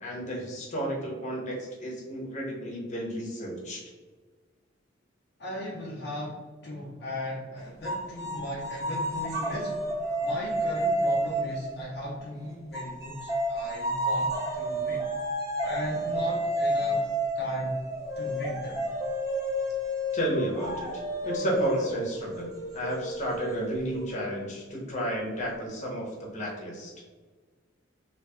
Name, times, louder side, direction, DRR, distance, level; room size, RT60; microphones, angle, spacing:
voice 1, 0.0-3.8 20.1-22.5 22.7-26.9, right 1 dB, 35° left, -2 dB, 0.9 m, -32 dB
voice 2, 5.4-9.7 10.2-15.0 15.6-17.1 17.3-17.8 18.2-18.9 21.4-21.5, left 1 dB, 55° left, -5 dB, 0.6 m, -37 dB
sound 1, 7.8-12.2 12.7-24.1, right 1 dB, 15° right, 0.8 m, -31 dB
3.3 x 2.8 x 3.0 m, 1.4 s
head